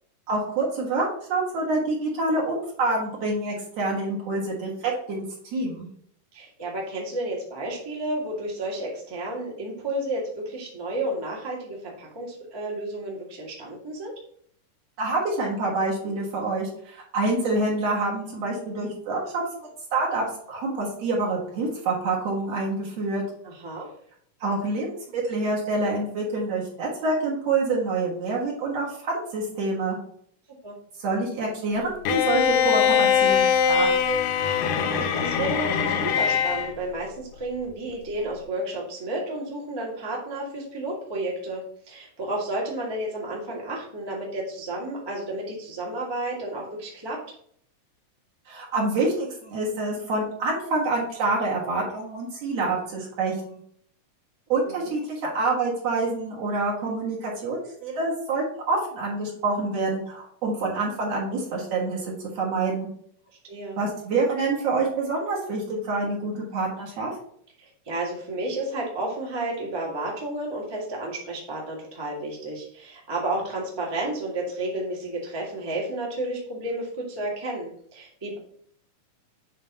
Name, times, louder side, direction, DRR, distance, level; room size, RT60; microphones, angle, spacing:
voice 1, 0.3-5.2 5.5-5.9 15.0-23.2 24.4-30.0 31.0-33.9 48.5-53.6 54.5-62.9 63.8-67.1, right 3 dB, 55° right, -3 dB, 2.2 m, -27 dB
voice 2, 6.3-14.1 23.4-23.9 30.6-30.7 34.8-47.2 54.7-54.9 63.4-63.8 67.6-78.4, right 1 dB, 30° right, -4 dB, 0.4 m, -32 dB
Bowed string instrument, 32.1-36.7, left 7 dB, 90° left, 2.3 m, -22 dB
7.5 x 2.8 x 5.3 m, 0.64 s
omnidirectional pair, 3.8 m